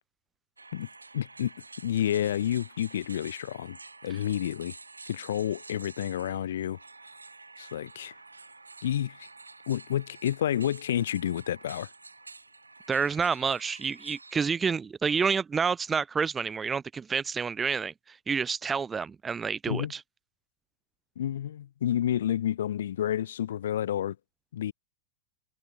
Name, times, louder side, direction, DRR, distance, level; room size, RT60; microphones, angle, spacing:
sound 1, 0.6-14.4, right 3 dB, 80° right, 7.9 m, -49 dB
voice 1, 1.1-1.5 1.8-4.7 5.1-6.8 7.6-8.1 8.8-9.3 9.7-11.9 19.7-19.9 21.1-24.1 24.5-24.7, left 10 dB, 60° left, 6.9 m, -29 dB
voice 2, 12.9-20.0, right 5 dB, 15° right, 0.7 m, -29 dB
figure-of-eight pair, 90°, 0 cm